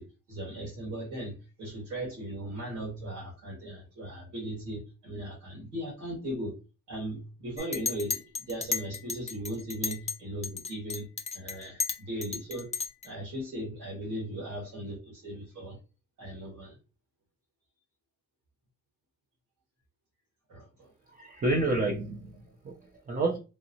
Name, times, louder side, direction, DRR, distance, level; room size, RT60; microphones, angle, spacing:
voice 1, 0.0-6.5 6.9-11.1 11.3-15.8 16.2-16.8 20.5-20.9, right 1 dB, 90° right, -7 dB, 1.6 m, -38 dB
Chink clink, 7.6-10.2 10.4-13.1, left 5 dB, 20° left, 0.4 m, -34 dB
voice 2, 21.1-23.4, right 2 dB, 30° right, 0 dB, 0.5 m, -30 dB
2.9 x 2.0 x 2.7 m, 0.31 s
cardioid pair, 90°, 30 cm